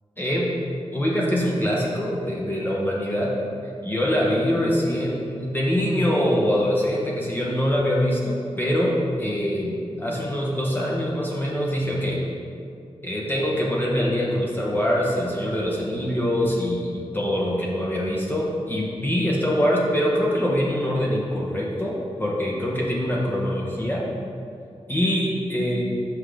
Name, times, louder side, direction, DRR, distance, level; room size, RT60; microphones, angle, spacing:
voice 1, 0.2-0.5 0.9-3.3 3.8-12.2 13.0-24.0 24.9-25.8, equal, 20° left, -4 dB, 0.7 m, -24 dB
6.1 x 5.7 x 3.4 m, 2.6 s
wide cardioid pair, 140°, 11 cm